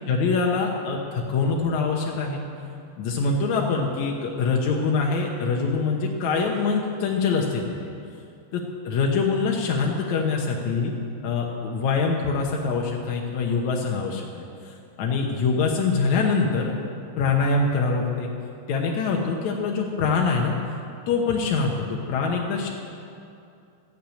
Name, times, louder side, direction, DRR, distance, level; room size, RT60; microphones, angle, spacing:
voice 1, 0.1-2.4 3.0-7.9 8.5-10.9 11.2-14.4 15.0-16.8 17.2-18.3 18.7-20.8 21.1-22.7, left 4 dB, 80° left, 0 dB, 1.6 m, -24 dB
13.0 x 10.0 x 9.0 m, 2.6 s
omnidirectional pair, 4.9 m